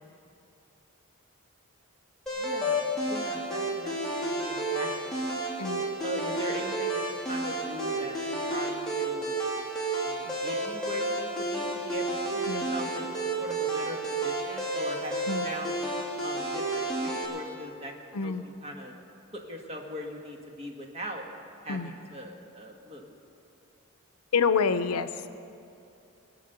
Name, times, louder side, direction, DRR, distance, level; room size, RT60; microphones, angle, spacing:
sound 1, 2.3-17.3, right 1 dB, 5° left, 3.2 m, -31 dB
voice 1, 2.3-5.2 6.0-8.1 8.4-9.4 10.0-12.1 12.5-15.8 16.2-18.3 18.6-18.9 19.3-21.2 21.6-23.1, right 1 dB, 30° right, 1 dB, 1.5 m, -40 dB
voice 2, 18.1-18.4 21.7-21.9 24.3-25.3, left 5 dB, 85° left, 12 dB, 0.6 m, -27 dB
21.0 x 8.6 x 6.8 m, 2.6 s
head